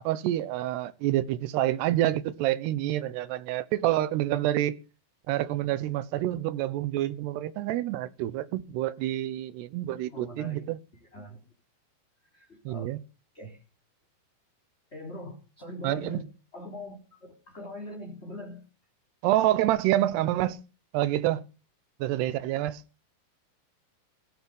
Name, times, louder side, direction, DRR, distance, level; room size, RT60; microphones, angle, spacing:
voice 1, 0.0-4.7 5.3-10.8 12.7-13.0 15.8-16.2 19.2-20.6 20.9-21.4 22.0-22.8, right 14 dB, 90° right, 3.1 m, -27 dB
voice 2, 10.1-10.7 11.1-11.4 12.3-12.9 13.3-13.6 14.9-16.3 16.5-18.6, left 1 dB, 15° left, 3.5 m, -42 dB
17.0 x 14.0 x 5.5 m
omnidirectional pair, 4.6 m